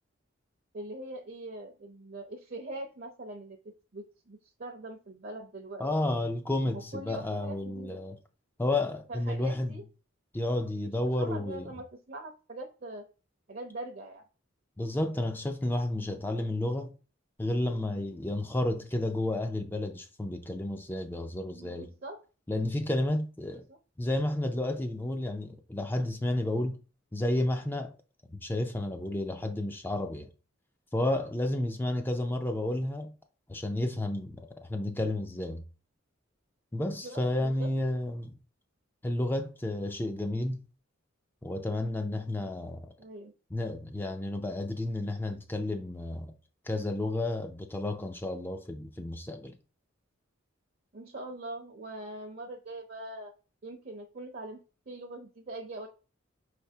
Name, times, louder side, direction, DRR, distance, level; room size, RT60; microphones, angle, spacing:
voice 1, 0.7-3.6 3.9-5.9 6.6-8.0 9.1-9.8 11.2-13.0 13.5-14.2 21.5-22.2 23.7-23.8 36.9-37.7 43.0-43.3 50.9-53.3 53.6-55.9, right 2 dB, 45° right, 0.6 m, -42 dB
voice 2, 5.8-8.2 8.6-9.7 10.3-11.7 14.8-16.9 17.4-21.9 22.5-23.6 24.0-26.8 27.1-27.9 28.3-30.3 30.9-33.1 33.5-35.6 36.7-38.3 39.0-40.6 41.4-42.9 43.5-46.3 46.6-49.5, left 1 dB, 10° left, 0.4 m, -31 dB
5.4 x 3.3 x 2.7 m
head